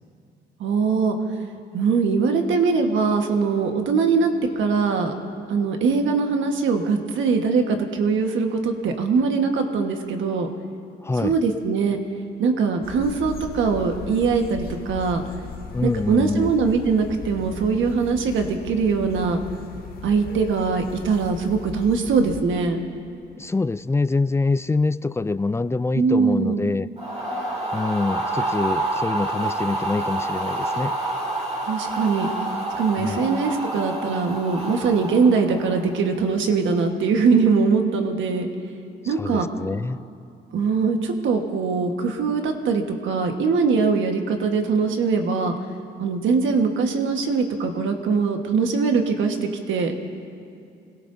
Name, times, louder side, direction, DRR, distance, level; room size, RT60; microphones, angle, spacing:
voice 1, 0.6-1.2 1.7-5.1 5.5-10.5 11.2-12.0 12.4-15.2 15.8-19.4 20.0-22.8 25.9-26.7 31.6-32.3 32.8-38.5 39.1-39.5 40.5-45.6 46.0-49.9, right 5 dB, 75° right, 4 dB, 1.4 m, -22 dB
voice 2, 11.0-11.4 15.7-16.5 23.4-26.9 27.7-30.9 33.0-33.2 39.0-40.0, left 3 dB, 15° left, 14 dB, 0.3 m, -25 dB
sound 1, 12.8-22.4, left 5 dB, 50° left, 1.5 m, -38 dB
sound 2, 27.0-36.1, right 2 dB, 35° right, 2.7 m, -28 dB
26.5 x 17.5 x 2.7 m, 2.6 s
cardioid pair, 90°, 20 cm